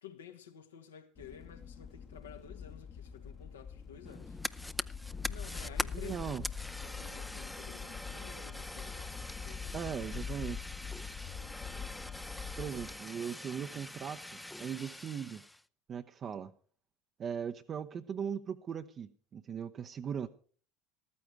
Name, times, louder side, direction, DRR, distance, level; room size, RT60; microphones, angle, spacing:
voice 1, 0.0-4.4 5.3-6.3 6.8-9.8 11.4-11.9, left 8 dB, 80° left, 1.5 m, -52 dB
sound 1, 1.2-13.0, left 6 dB, 35° left, 1.0 m, -44 dB
Fire, 4.1-15.6, left 1 dB, 5° left, 0.5 m, -43 dB
voice 2, 5.9-6.4 9.7-10.7 12.6-15.4 15.9-16.5 17.2-20.3, right 7 dB, 35° right, 0.7 m, -39 dB
14.0 x 13.5 x 4.6 m
hypercardioid pair, 75°, 0 cm